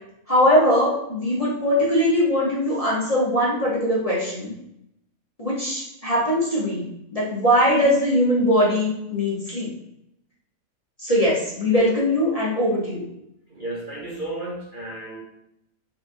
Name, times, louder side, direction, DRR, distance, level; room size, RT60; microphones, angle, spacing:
voice 1, 0.3-4.5 5.4-6.9 7.1-9.7 11.0-13.1, equal, 30° left, -6 dB, 0.9 m, -21 dB
voice 2, 13.5-15.2, right 1 dB, 40° right, -5 dB, 0.9 m, -33 dB
4.1 x 4.1 x 2.6 m, 0.79 s
omnidirectional pair, 1.6 m